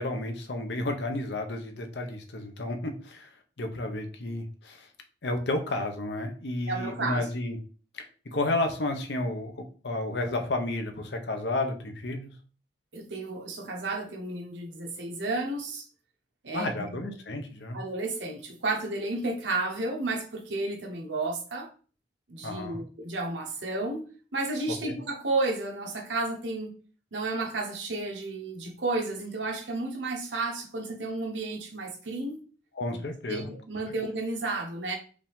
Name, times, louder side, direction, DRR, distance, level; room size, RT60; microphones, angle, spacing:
voice 1, 0.0-3.3 3.6-4.9 5.2-7.6 7.9-12.3 16.5-17.8 22.4-22.8 24.8-25.0 32.8-33.5, left 2 dB, 70° left, 0.8 m, -32 dB
voice 2, 6.7-7.3 12.9-15.9 16.4-17.0 17.7-21.7 22.3-24.1 24.3-26.7 27.1-32.4 33.1-35.0, right 2 dB, 80° right, 1.1 m, -32 dB
5.0 x 2.7 x 3.6 m
head